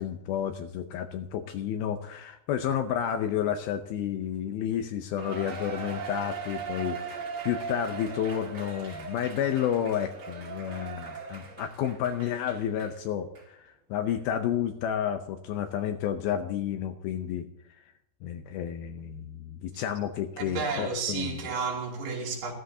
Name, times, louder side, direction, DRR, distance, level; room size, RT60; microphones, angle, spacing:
voice 1, 0.0-7.0 7.4-17.5 18.2-21.5, left 9 dB, 80° left, 2.3 m, -31 dB
Cheering, 5.2-13.0 13.4-13.5 14.1-14.2, right 5 dB, 50° right, 1.8 m, -39 dB
voice 2, 20.4-22.5, right 4 dB, 70° right, 4.6 m, -32 dB
15.5 x 13.0 x 2.7 m
omnidirectional pair, 4.9 m